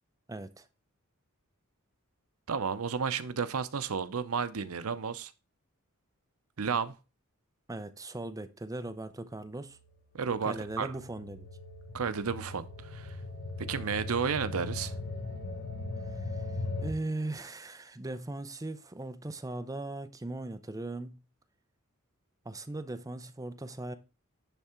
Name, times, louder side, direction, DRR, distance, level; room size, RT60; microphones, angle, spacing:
voice 1, 0.3-0.7 7.7-9.8 10.4-11.4 16.8-21.2 22.4-23.9, right 2 dB, 15° right, 0.6 m, -38 dB
voice 2, 2.5-5.3 6.6-6.9 10.1-10.9 11.9-13.2 13.6-14.9, right 6 dB, 85° right, 0.7 m, -32 dB
sound 1, 9.3-16.9, left 2 dB, 55° left, 0.9 m, -39 dB
10.5 x 3.6 x 4.3 m
head